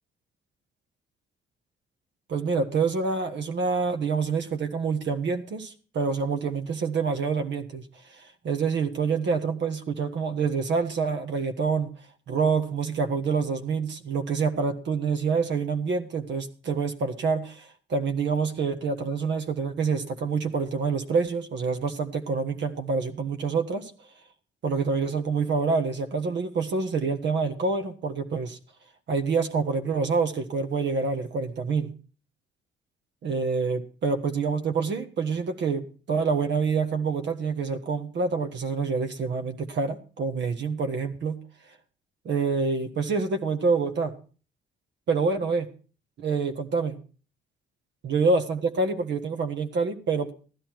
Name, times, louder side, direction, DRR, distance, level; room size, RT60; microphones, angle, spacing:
voice 1, 2.3-7.8 8.1-11.9 12.3-23.9 24.6-28.6 29.1-31.9 33.2-41.4 42.2-44.1 45.1-45.7 46.2-47.0 48.0-50.3, right 4 dB, 65° right, 6 dB, 1.5 m, -27 dB
15.0 x 11.0 x 4.6 m, 0.37 s
cardioid pair, 90°, 20 cm